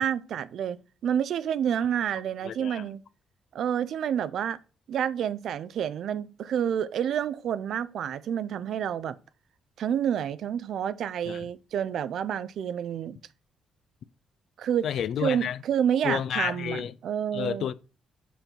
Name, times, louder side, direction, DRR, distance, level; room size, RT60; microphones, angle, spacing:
voice 1, 0.0-3.0 3.5-4.6 4.9-9.2 9.8-13.2 14.6-14.9 15.2-17.7, right 9 dB, 70° right, 0.3 m, -29 dB
voice 2, 2.4-2.9 11.3-11.5 14.8-15.6 16.0-16.9 17.3-17.7, left 9 dB, 70° left, 0.3 m, -31 dB
5.5 x 4.3 x 4.4 m
cardioid pair, 90°, 0 cm